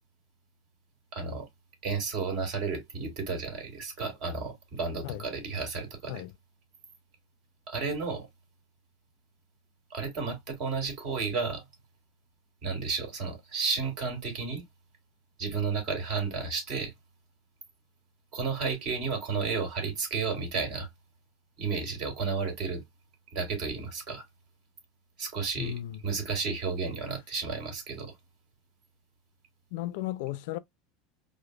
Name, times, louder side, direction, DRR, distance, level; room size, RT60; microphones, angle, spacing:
voice 1, 1.1-1.5 1.8-6.2 7.7-8.3 9.9-11.6 12.6-14.6 15.4-16.9 18.3-20.9 21.6-22.8 23.3-24.2 25.2-25.8 26.0-28.1, right 4 dB, 55° right, 1.7 m, -32 dB
voice 2, 25.6-26.0 29.7-30.6, left 14 dB, 70° left, 0.3 m, -35 dB
5.0 x 2.0 x 2.2 m
supercardioid pair, 130°, 0 cm